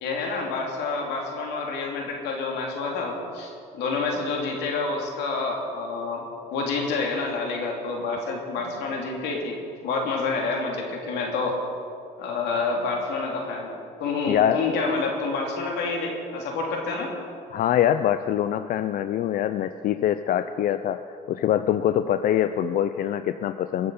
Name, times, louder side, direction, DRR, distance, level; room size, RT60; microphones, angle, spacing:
voice 1, 0.0-6.2 6.5-9.6 9.8-11.6 12.2-13.7 14.0-17.1, left 3 dB, 85° left, 0 dB, 2.9 m, -28 dB
voice 2, 14.3-14.6 17.5-21.0 21.3-23.9, left 10 dB, 60° left, 11 dB, 0.5 m, -24 dB
22.5 x 7.8 x 5.5 m, 2.4 s
cardioid pair, 110°, 17 cm